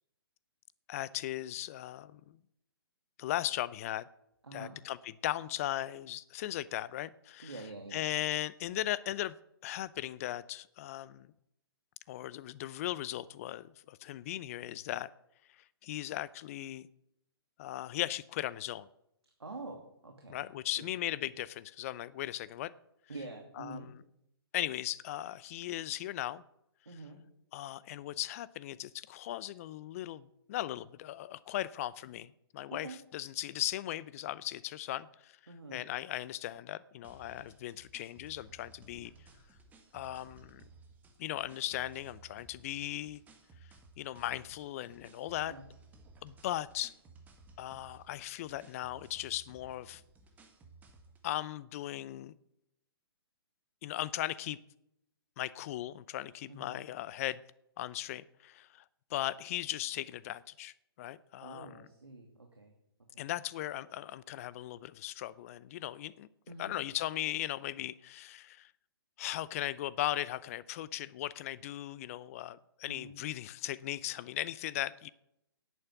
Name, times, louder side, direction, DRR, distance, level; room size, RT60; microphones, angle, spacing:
voice 1, 0.9-2.4 3.2-4.1 4.5-7.6 7.9-9.3 9.6-11.3 12.1-15.1 15.8-16.9 17.6-18.9 20.3-22.7 23.6-24.0 24.5-26.4 27.5-35.4 35.7-39.1 39.9-40.7 41.2-43.2 44.0-45.6 46.2-46.9 47.6-50.0 51.2-52.3 53.8-54.6 55.4-57.4 57.8-58.8 59.1-61.9 63.2-66.3 66.6-68.7 69.2-75.1, left 14 dB, 35° left, 19 dB, 0.6 m, -38 dB
voice 2, 4.4-4.8 7.4-8.0 19.4-20.5 20.8-20.9 23.1-23.9 26.9-27.2 32.7-33.0 35.5-35.9 45.4-45.6 56.5-56.8 61.4-62.7 63.1-63.3 66.5-66.8 72.9-73.2, right 2 dB, 80° right, 2 dB, 2.4 m, -46 dB
sound 1, 37.0-51.3, right 3 dB, 10° right, 1.8 m, -58 dB
10.5 x 8.8 x 8.2 m, 0.80 s
figure-of-eight pair, 130°, 13 cm